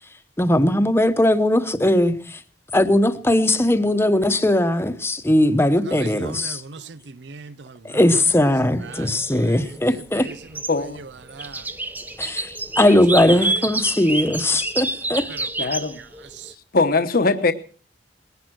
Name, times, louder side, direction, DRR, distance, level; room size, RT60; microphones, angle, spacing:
voice 1, 0.4-2.4 2.7-6.6 7.8-10.3 12.2-15.3, left 1 dB, 15° left, 1.0 m, -19 dB
voice 2, 5.7-8.5 8.8-11.7 13.1-13.7 15.3-15.7 16.0-16.5, right 4 dB, 75° right, 0.6 m, -40 dB
sound 1, 8.4-16.5, right 2 dB, 10° right, 0.8 m, -29 dB
voice 3, 10.7-11.0 15.6-16.0 16.7-17.5, left 3 dB, 55° left, 1.1 m, -20 dB
19.5 x 10.5 x 6.3 m
head